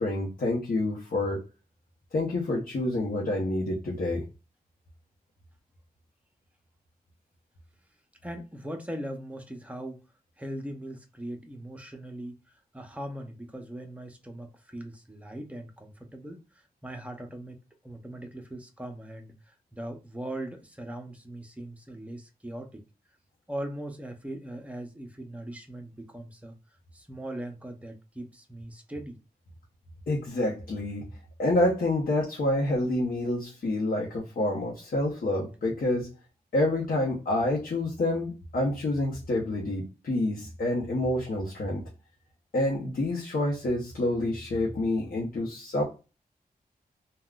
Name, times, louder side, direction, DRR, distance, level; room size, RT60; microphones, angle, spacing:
voice 1, 0.0-1.4 2.1-4.2 30.1-31.1 31.4-36.1 36.5-41.8 42.5-45.8, left 1 dB, 65° left, 0.8 m, -28 dB
voice 2, 8.2-10.1 10.4-22.8 23.5-26.5 26.9-29.2, right 1 dB, 10° right, 0.6 m, -40 dB
3.5 x 2.3 x 2.3 m
wide cardioid pair, 95°, 16 cm